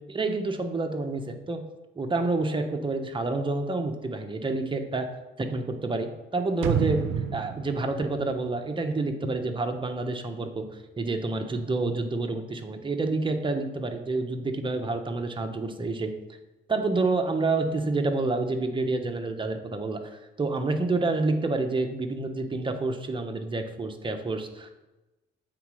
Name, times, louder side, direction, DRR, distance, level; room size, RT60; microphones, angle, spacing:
voice 1, 0.1-1.6 2.0-5.1 5.4-7.0 7.3-10.7 11.0-16.1 16.7-20.1 20.4-24.9, right 3 dB, 25° right, 5 dB, 1.0 m, -28 dB
sound 1, 6.6-9.4 9.8-9.9, right 7 dB, 85° right, 0.5 m, -30 dB
7.9 x 4.1 x 4.9 m, 1.0 s
cardioid pair, 90°, 20 cm